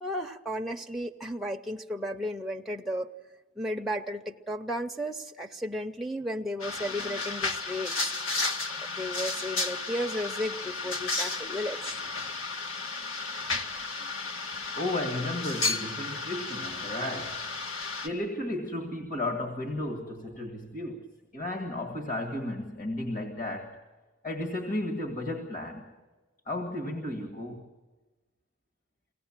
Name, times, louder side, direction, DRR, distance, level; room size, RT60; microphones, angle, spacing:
voice 1, 0.0-3.1 3.6-8.1 8.8-12.0, equal, ahead, 2 dB, 0.6 m, -34 dB
sound 1, 6.6-18.1, left 3 dB, 90° left, 1.7 m, -33 dB
voice 2, 14.7-17.5 18.0-21.1 21.3-23.8 24.2-25.8 26.5-27.6, left 1 dB, 40° left, 1 dB, 1.8 m, -34 dB
23.5 x 17.5 x 7.4 m, 1.2 s
head